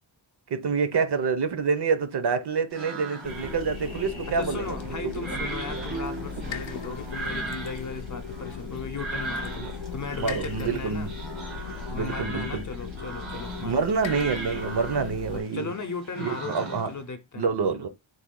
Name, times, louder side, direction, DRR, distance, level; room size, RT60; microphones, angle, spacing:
voice 1, 0.5-4.7 9.6-9.7 10.2-11.1 11.9-12.6 13.6-15.7 16.2-16.9 17.4-17.9, right 5 dB, 65° right, 0.7 m, -27 dB
sound 1, 2.7-8.1, right 5 dB, 25° right, 0.3 m, -41 dB
sound 2, 2.7-17.0, right 2 dB, 90° right, 1.5 m, -39 dB
sound 3, 3.2-15.4, left 6 dB, 85° left, 0.6 m, -37 dB
voice 2, 4.3-11.1 11.9-13.8 15.3-17.5, left 4 dB, 40° left, 0.6 m, -37 dB
3.3 x 2.2 x 3.7 m
wide cardioid pair, 80°, 45 cm